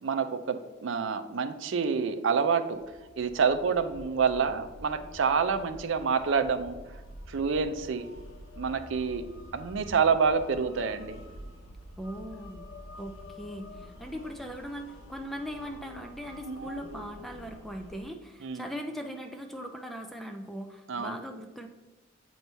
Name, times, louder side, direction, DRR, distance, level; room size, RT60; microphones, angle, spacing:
voice 1, 0.0-2.8 3.2-6.8 7.3-8.1 8.6-9.2 9.5-11.2 16.5-16.6 18.4-18.6 20.9-21.1, right 5 dB, 70° right, 8 dB, 0.5 m, -27 dB
sound 1, 2.7-18.0, equal, 85° left, 1.1 m, -47 dB
voice 2, 12.0-12.6 13.0-21.7, equal, ahead, 4 dB, 0.4 m, -40 dB
7.9 x 3.1 x 5.4 m, 1.2 s
head